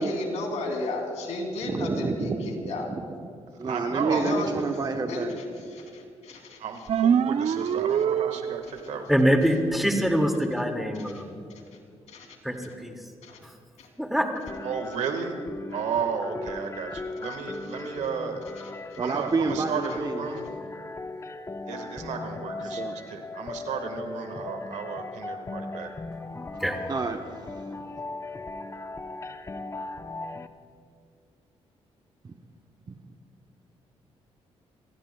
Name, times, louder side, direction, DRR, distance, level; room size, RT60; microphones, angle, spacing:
voice 1, 0.0-2.9 4.1-4.5 5.1-6.6 12.1-12.3 13.2-13.4 13.8-13.9, left 2 dB, 80° left, 2 dB, 2.8 m, -33 dB
voice 2, 1.7-3.3 3.6-5.4 19.0-20.2 22.6-23.0 26.5-26.6 26.9-27.7 32.2-32.3 32.9-33.0, right 4 dB, 35° right, 4 dB, 0.9 m, -29 dB
voice 3, 3.6-4.3 6.6-9.1 14.6-15.4 15.7-18.4 19.0-20.5 21.6-25.9, right 6 dB, 80° right, 5 dB, 1.6 m, -33 dB
sound 1, 6.9-8.9, right 8 dB, 60° right, 0.5 m, -24 dB
voice 4, 9.1-11.4 12.4-12.9 13.4-13.5 14.0-14.4 26.6-26.8, equal, ahead, 3 dB, 2.1 m, -24 dB
sound 2, 14.5-30.5, left 3 dB, 25° left, 0.7 m, -38 dB
27.5 x 16.0 x 2.3 m, 2.3 s
cardioid pair, 65°, 12 cm